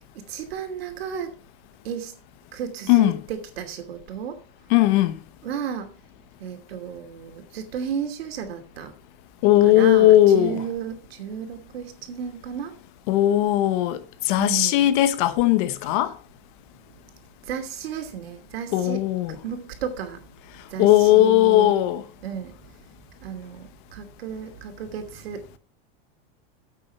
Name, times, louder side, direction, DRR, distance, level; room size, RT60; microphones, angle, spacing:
voice 1, 0.1-1.3 1.8-2.1 2.5-4.4 5.4-5.9 6.4-8.9 9.6-12.8 14.4-14.9 17.5-20.2 20.7-21.7 22.2-22.5 23.2-25.4, right 7 dB, 85° right, 2.7 m, -33 dB
voice 2, 2.9-3.2 4.7-5.2 9.4-10.6 13.1-16.1 18.7-19.4 20.8-22.0, left 14 dB, 55° left, 1.2 m, -18 dB
9.2 x 7.6 x 5.5 m
supercardioid pair, 150°, 30 cm